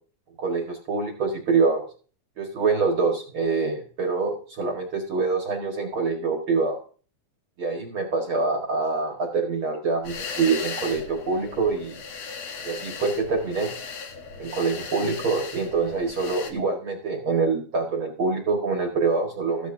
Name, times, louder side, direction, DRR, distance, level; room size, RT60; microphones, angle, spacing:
voice 1, 0.4-1.8 2.4-6.8 7.6-12.0 12.6-13.7 14.4-19.7, right 4 dB, 50° right, 1 dB, 1.6 m, -25 dB
sound 1, 10.0-16.5, left 5 dB, 60° left, 1.8 m, -37 dB
14.5 x 11.5 x 2.7 m, 0.40 s
omnidirectional pair, 4.7 m